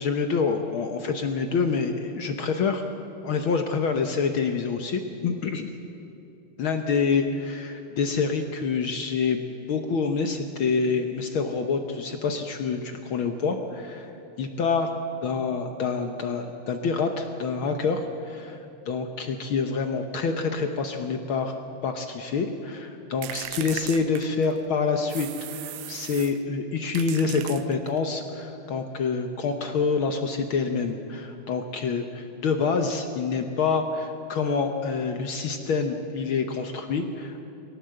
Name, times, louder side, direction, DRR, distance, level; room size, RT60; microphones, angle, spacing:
voice 1, 0.0-2.8 3.2-5.7 6.6-14.1 14.4-14.9 15.2-25.3 25.5-37.5, left 5 dB, 75° left, 6 dB, 1.2 m, -27 dB
sound 1, 23.2-24.7 25.1-26.4 26.9-28.1, right 14 dB, 80° right, 1.5 m, -38 dB
23.0 x 17.5 x 7.8 m, 2.8 s
omnidirectional pair, 3.7 m